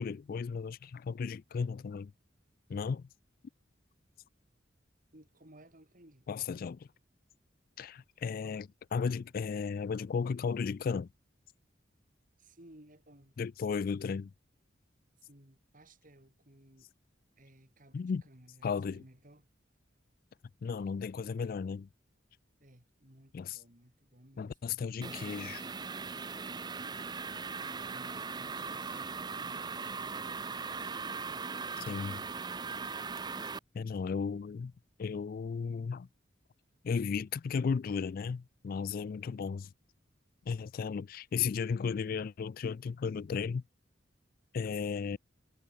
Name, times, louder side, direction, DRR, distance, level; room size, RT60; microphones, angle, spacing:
voice 1, 0.0-2.1 2.7-3.1 6.3-6.9 7.8-11.1 13.4-14.3 17.9-18.2 18.6-19.0 20.6-21.9 23.3-23.6 24.4-25.6 31.8-32.2 33.7-34.7 35.0-36.1 36.8-39.7 40.5-43.6 44.5-45.2, left 5 dB, 50° left, 0.3 m, -35 dB
voice 2, 5.1-6.3 12.4-13.4 15.2-16.9 17.4-19.5 22.6-24.8 27.5-30.7 31.3-31.6, right 1 dB, 45° right, 5.5 m, -59 dB
sound 1, 25.0-33.6, right 5 dB, 25° right, 0.6 m, -39 dB
head